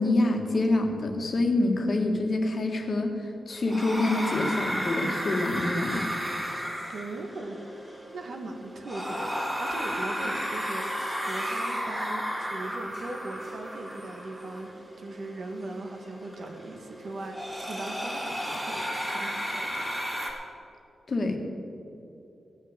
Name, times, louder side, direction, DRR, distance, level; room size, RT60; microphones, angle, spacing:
voice 1, 0.0-6.1 21.1-21.4, left 2 dB, 45° left, 3 dB, 1.6 m, -26 dB
sound 1, 3.5-20.3, equal, 10° right, 3.0 m, -34 dB
voice 2, 6.9-7.6 8.1-14.7 15.0-19.9, right 2 dB, 60° right, 3 dB, 1.7 m, -39 dB
16.5 x 6.4 x 8.9 m, 2.7 s
wide cardioid pair, 125°, 0 cm